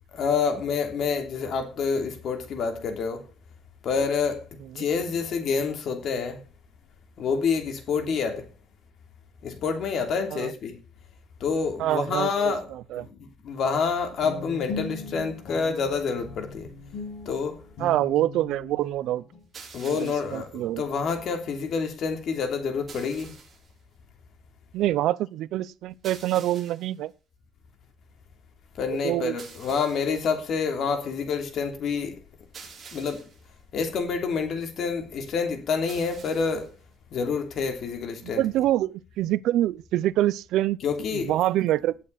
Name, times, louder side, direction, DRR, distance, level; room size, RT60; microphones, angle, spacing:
voice 1, 0.1-3.3 3.8-6.4 7.2-8.5 9.4-10.8 11.4-12.7 13.0-16.7 17.2-17.7 19.7-23.3 28.7-32.2 32.9-33.3 33.7-36.8 37.1-38.4 40.8-41.4, left 5 dB, 50° left, 3.1 m, -28 dB
voice 2, 11.8-13.0 17.8-19.2 19.8-20.8 24.7-27.1 29.0-29.4 38.2-40.8 41.1-41.9, right 14 dB, 80° right, 0.7 m, -26 dB
Guitar, 14.2-19.4, left 3 dB, 75° left, 6.4 m, -38 dB
sound 1, 19.5-20.5 22.9-23.7 26.0-27.0 29.4-30.2 32.5-33.5 35.9-36.7, right 5 dB, 30° right, 5.5 m, -47 dB
18.0 x 8.5 x 4.1 m
cardioid pair, 170°, 0 cm